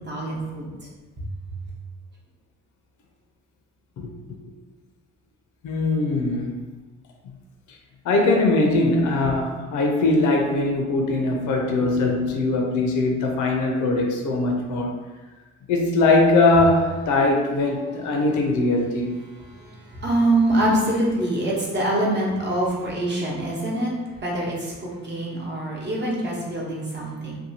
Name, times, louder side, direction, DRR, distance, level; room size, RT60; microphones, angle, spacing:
voice 1, 0.1-0.7 19.4-23.9 24.2-27.4, right 1 dB, 35° right, -4 dB, 0.9 m, -24 dB
voice 2, 5.6-6.6 8.0-14.9 15.7-19.1, left 2 dB, 80° left, 1 dB, 0.6 m, -21 dB
2.7 x 2.3 x 2.7 m, 1.2 s
cardioid pair, 90°, 30 cm